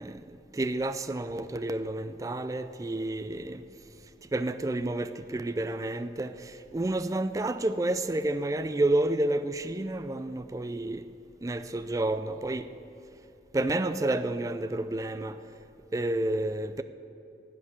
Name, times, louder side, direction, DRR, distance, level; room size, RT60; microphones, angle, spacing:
voice 1, 0.0-3.6 4.3-11.1 11.4-12.7 13.5-15.4 15.9-16.8, right 2 dB, 20° right, 0.3 m, -30 dB
11.5 x 8.9 x 8.3 m
head